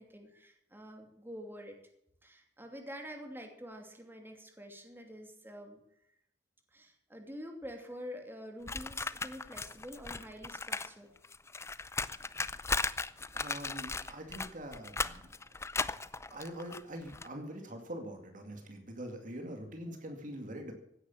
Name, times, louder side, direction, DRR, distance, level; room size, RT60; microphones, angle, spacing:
voice 1, 0.0-1.8 2.2-5.8 6.7-11.1, equal, 10° right, 3 dB, 2.8 m, -47 dB
sound 1, 8.7-10.9 11.2-17.3, left 3 dB, 15° left, 0.5 m, -37 dB
voice 2, 13.3-15.3 16.3-20.7, right 1 dB, 45° right, 5 dB, 2.3 m, -43 dB
16.5 x 9.9 x 7.2 m, 0.73 s
head